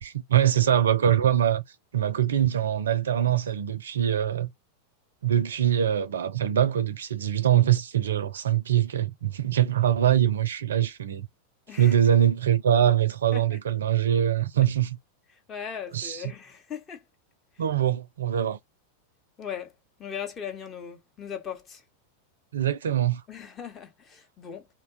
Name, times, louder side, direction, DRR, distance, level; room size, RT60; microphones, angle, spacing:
voice 1, 0.0-1.6 1.9-4.5 5.2-11.3 11.8-15.0 15.9-16.2 17.6-18.6 22.5-23.2, right 10 dB, 65° right, 0.4 m, -23 dB
voice 2, 11.7-12.0 13.3-13.6 15.5-17.0 19.4-19.7 20.0-21.8 23.3-24.7, left 8 dB, 25° left, 0.8 m, -38 dB
2.8 x 2.2 x 2.6 m
figure-of-eight pair, 90°, 0 cm